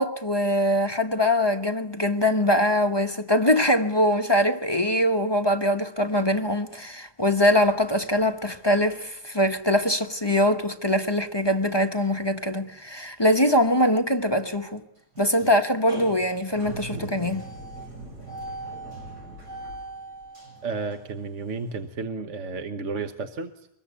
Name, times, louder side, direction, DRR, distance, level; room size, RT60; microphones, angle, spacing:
voice 1, 0.0-14.8 15.2-17.5, left 1 dB, 20° left, 0.9 m, -23 dB
sound 1, 12.6-12.9 13.2-13.3 13.6-13.7 15.2-15.5 15.8-21.9, right 2 dB, 65° right, 8.3 m, -39 dB
voice 2, 20.6-23.7, right 4 dB, 50° right, 1.3 m, -32 dB
24.0 x 21.0 x 8.3 m
omnidirectional pair, 1.9 m